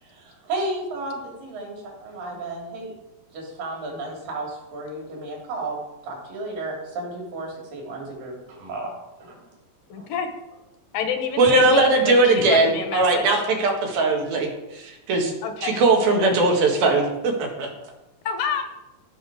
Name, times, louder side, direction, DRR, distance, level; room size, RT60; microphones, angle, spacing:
voice 1, 0.0-2.9 3.3-8.9 9.2-9.4 10.0-10.1 11.4-11.5, right 2 dB, 70° right, -1 dB, 4.8 m, -33 dB
voice 2, 9.9-10.3 10.9-13.4 15.4-15.8 16.3-16.4 18.2-18.6, left 7 dB, 75° left, 7 dB, 2.6 m, -28 dB
voice 3, 11.4-14.5 14.8-15.3 15.6-17.7, right 2 dB, 85° right, 1 dB, 3.7 m, -19 dB
16.0 x 6.2 x 4.9 m, 0.96 s
omnidirectional pair, 4.1 m